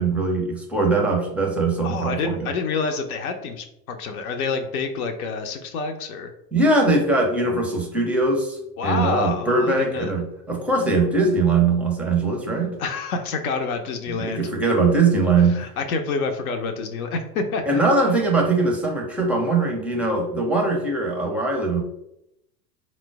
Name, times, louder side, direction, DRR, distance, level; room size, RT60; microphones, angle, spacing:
voice 1, 0.0-2.4 6.5-8.6 8.8-12.8 14.1-15.6 17.7-21.8, right 3 dB, 5° right, 0 dB, 0.6 m, -21 dB
voice 2, 1.8-6.3 8.8-10.1 12.8-14.4 15.5-17.8, left 4 dB, 60° left, 6 dB, 0.7 m, -27 dB
4.3 x 2.0 x 4.5 m, 0.81 s
figure-of-eight pair, 85°, 49 cm